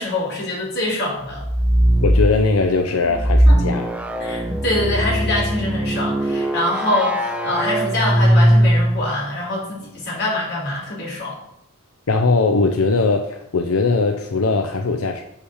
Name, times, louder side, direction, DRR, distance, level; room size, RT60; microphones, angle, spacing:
voice 1, 0.0-1.4 3.5-3.6 4.2-11.4, left 1 dB, 50° left, -4 dB, 3.6 m, -24 dB
sound 1, 1.3-2.3 3.1-9.1, equal, 5° right, 0.6 m, -19 dB
voice 2, 2.0-3.9 12.1-15.2, left 3 dB, 85° left, 5 dB, 0.6 m, -20 dB
6.6 x 5.8 x 6.4 m, 0.81 s
head